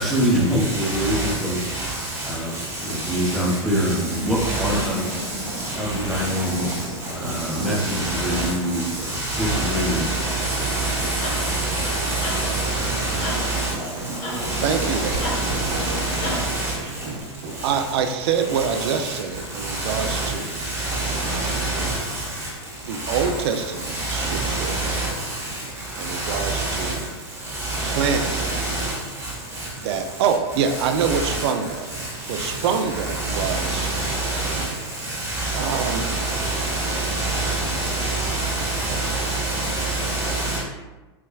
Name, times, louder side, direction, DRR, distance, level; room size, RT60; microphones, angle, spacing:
voice 1, 0.0-1.6 2.2-2.5 2.8-5.0 5.7-8.9 9.4-10.1, equal, ahead, 0.6 m, -24 dB
voice 2, 0.6-4.0 4.3-6.8 7.3-13.7 14.3-16.7 18.5-19.1 19.6-22.5 23.0-23.4 23.8-25.5 26.0-26.9 27.5-29.0 29.6-29.7 30.7-31.5 31.9-32.5 32.9-34.7 35.0-40.6, right 2 dB, 20° right, 1.0 m, -26 dB
sound 1, 2.7-20.0 20.3-20.4, right 1 dB, 85° right, 1.2 m, -35 dB
sound 2, 11.2-11.5 12.2-12.4 13.2-13.4 14.2-14.4 15.2-15.4 16.2-16.4 17.2-17.3, left 1 dB, 30° left, 1.1 m, -31 dB
voice 3, 14.6-15.2 17.6-20.6 21.2-21.6 22.8-24.8 26.0-27.0 27.8-28.3 29.8-31.9 32.3-33.9 35.5-36.1, right 6 dB, 65° right, 0.4 m, -25 dB
4.6 x 2.1 x 2.3 m
supercardioid pair, 135°, 15 cm